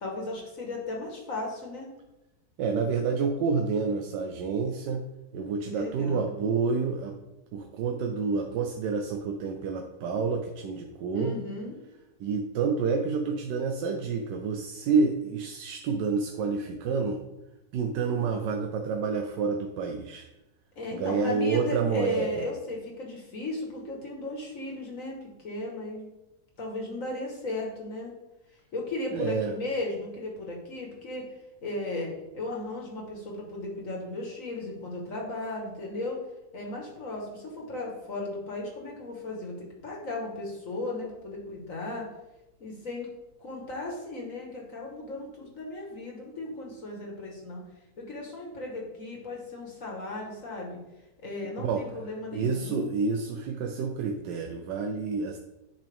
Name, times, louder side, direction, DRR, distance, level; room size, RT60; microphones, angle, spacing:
voice 1, 0.0-1.9 5.6-6.3 11.1-11.8 20.8-26.1 26.6-28.1 28.7-31.3 31.6-36.2 36.5-42.1 42.6-43.1 43.4-47.6 48.0-50.8 51.2-52.9, left 2 dB, 50° left, -1 dB, 1.9 m, -36 dB
voice 2, 2.6-5.1 5.3-7.2 7.5-11.3 12.2-17.2 17.7-20.2 20.9-22.5 29.1-29.5 51.6-51.8 52.3-55.4, right 5 dB, 90° right, 4 dB, 1.3 m, -28 dB
10.0 x 5.4 x 3.5 m, 0.98 s
omnidirectional pair, 1.8 m